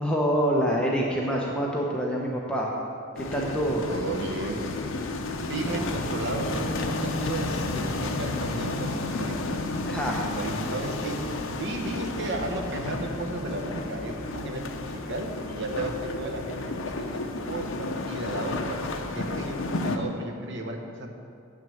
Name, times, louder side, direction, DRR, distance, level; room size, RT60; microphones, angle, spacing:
voice 1, 0.0-2.7 3.3-3.9 5.6-5.9 9.9-10.2, equal, 5° left, -3 dB, 0.7 m, -26 dB
sound 1, 3.2-20.0, left 2 dB, 65° left, 0.7 m, -32 dB
voice 2, 3.9-4.7 5.5-9.6 10.0-17.2 17.5-21.1, right 2 dB, 60° right, 3 dB, 1.0 m, -34 dB
7.6 x 6.0 x 7.0 m, 2.3 s
head